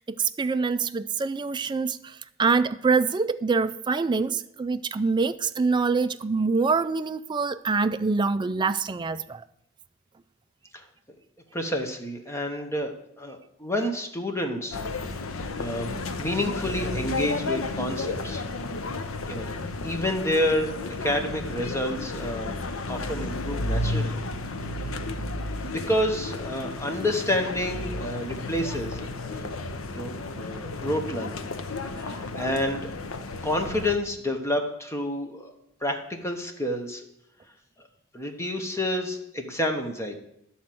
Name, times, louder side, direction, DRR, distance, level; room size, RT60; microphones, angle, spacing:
voice 1, 0.0-9.4, right 4 dB, 20° right, 0.3 m, -25 dB
voice 2, 11.5-15.3 15.6-18.4 19.3-19.5 19.8-22.5 22.9-24.2 24.8-24.9 25.6-29.6 29.9-31.5 31.9-33.0 33.4-35.5 35.8-37.0 37.8-37.9 38.1-40.2, left 1 dB, 15° left, 1.0 m, -29 dB
sound 1, 14.7-34.0, left 2 dB, 70° left, 0.8 m, -32 dB
11.0 x 4.3 x 7.6 m
head